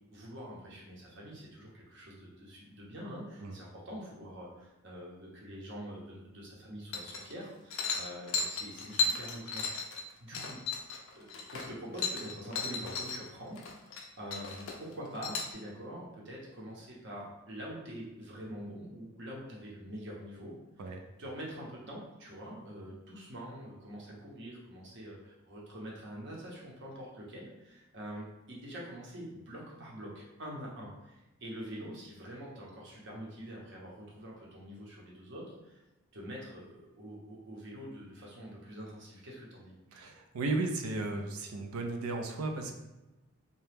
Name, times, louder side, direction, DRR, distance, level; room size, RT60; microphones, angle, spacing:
voice 1, 0.1-10.6 11.0-20.9 21.2-35.8 36.1-39.7, equal, 55° right, -4 dB, 0.8 m, -45 dB
sound 1, 6.9-7.4 7.7-13.2 13.5-14.0 14.3-15.5, left 4 dB, 60° left, 0.4 m, -35 dB
voice 2, 39.9-42.7, right 2 dB, 80° right, 4 dB, 0.4 m, -35 dB
2.8 x 2.2 x 3.3 m, 1.0 s
head